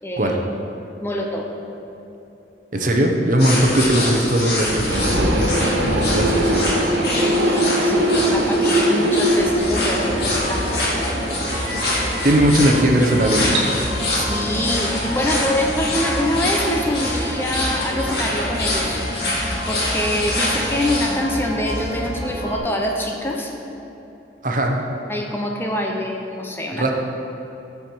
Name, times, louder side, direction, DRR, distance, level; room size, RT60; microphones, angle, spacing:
voice 1, 0.0-0.3 1.0-1.5 5.9-6.5 7.1-10.8 14.2-19.0 19.7-23.5 25.1-26.8, left 1 dB, 15° left, 0 dB, 0.7 m, -25 dB
voice 2, 2.7-5.5 6.2-6.7 12.2-13.6 24.4-24.8 26.7-26.9, right 1 dB, 45° right, 2 dB, 0.9 m, -18 dB
sound 1, 3.4-21.1, left 1 dB, 65° left, 2.1 m, -26 dB
sound 2, 4.9-19.4, right 1 dB, 85° right, 1.3 m, -24 dB
sound 3, 9.6-22.6, equal, 15° right, 2.2 m, -29 dB
14.5 x 4.8 x 4.5 m, 3.0 s
head